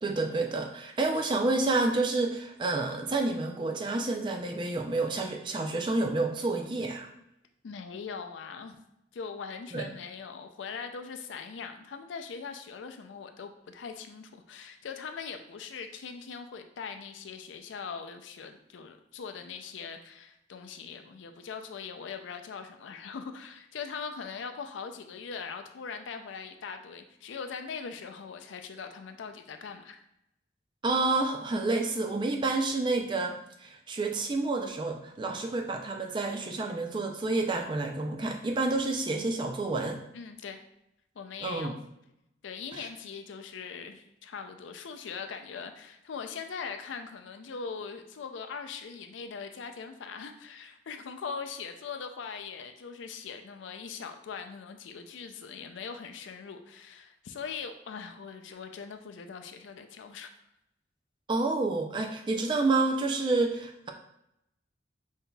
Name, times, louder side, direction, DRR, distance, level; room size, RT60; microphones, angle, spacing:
voice 1, 0.0-7.1 9.7-9.8 30.8-40.0 41.4-41.8 42.7-42.8 61.3-63.9, right 3 dB, 25° right, 3 dB, 0.3 m, -29 dB
voice 2, 7.6-8.8 9.1-30.0 40.1-40.6 41.2-41.7 42.4-60.3, left 5 dB, 80° left, 7 dB, 0.4 m, -41 dB
5.5 x 2.7 x 2.2 m, 0.81 s
head